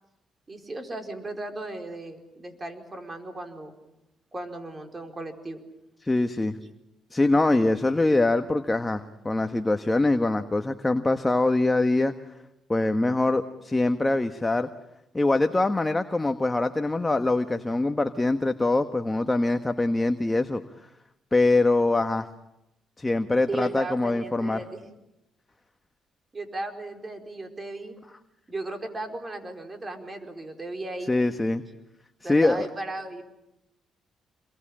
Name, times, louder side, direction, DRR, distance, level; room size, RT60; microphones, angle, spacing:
voice 1, 0.5-3.7 4.3-5.6 23.5-24.8 26.3-28.0 28.5-31.2 32.2-33.2, right 2 dB, 25° right, 4 dB, 4.6 m, -36 dB
voice 2, 6.0-6.6 7.1-12.1 12.7-14.7 15.1-20.6 21.3-22.3 23.0-24.6 31.1-31.6 32.2-32.7, left 2 dB, 15° left, 7 dB, 1.3 m, -23 dB
27.0 x 22.5 x 8.8 m, 0.89 s
cardioid pair, 90°, 0 cm